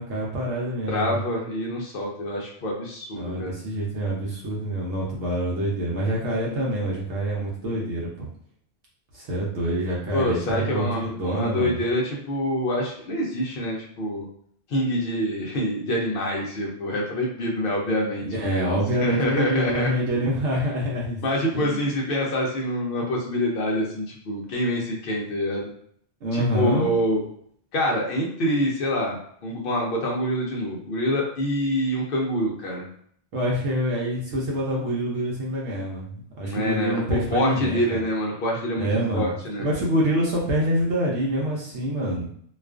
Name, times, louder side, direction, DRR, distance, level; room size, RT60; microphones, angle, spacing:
voice 1, 0.0-1.2 3.1-8.3 9.1-11.8 18.2-21.2 21.5-21.9 26.2-26.9 33.3-38.0 38.8-39.3 39.6-42.3, right 1 dB, 75° right, -3 dB, 0.9 m, -26 dB
voice 2, 0.9-3.5 10.1-14.3 14.7-18.7 19.0-19.9 20.5-20.6 21.2-25.7 26.3-27.2 27.7-29.2 29.4-32.9 36.4-38.9 39.1-39.7, equal, 60° left, -1 dB, 0.6 m, -26 dB
2.3 x 2.3 x 2.3 m, 0.63 s
omnidirectional pair, 1.2 m